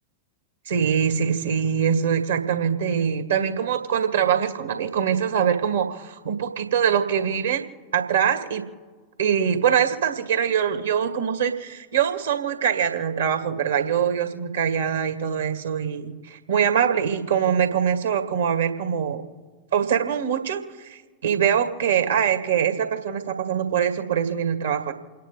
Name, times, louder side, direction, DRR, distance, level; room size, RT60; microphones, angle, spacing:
voice 1, 0.7-7.7 7.9-8.6 9.2-19.2 19.7-24.9, right 8 dB, 65° right, 6 dB, 2.0 m, -23 dB
29.0 x 10.0 x 3.8 m, 1.4 s
figure-of-eight pair, 90°, 0 cm